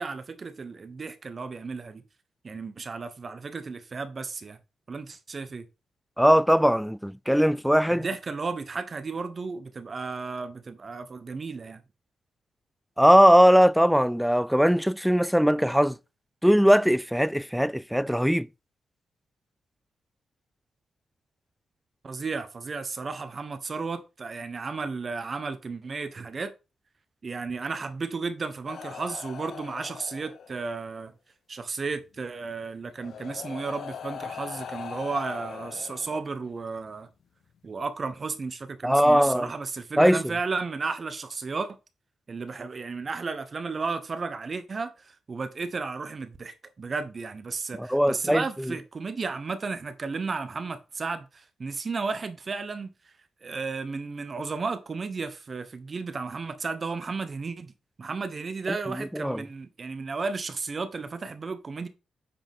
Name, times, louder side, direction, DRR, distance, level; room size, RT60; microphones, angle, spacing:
voice 1, 0.0-2.0 2.4-4.6 4.9-5.7 7.9-11.8 22.0-26.5 27.2-31.1 31.5-37.1 37.6-41.7 42.3-52.9 53.4-57.7 58.0-61.9, right 4 dB, 40° right, 1.2 m, -33 dB
voice 2, 6.2-8.1 13.0-16.0 16.4-18.5 38.8-39.5 40.0-40.2 47.8-48.7 58.7-59.4, equal, ahead, 0.3 m, -20 dB
sound 1, 28.7-30.8 32.1-32.2 33.0-36.6 37.6-37.8, left 7 dB, 70° left, 0.9 m, -40 dB
8.6 x 5.1 x 3.7 m
cardioid pair, 90°, 0 cm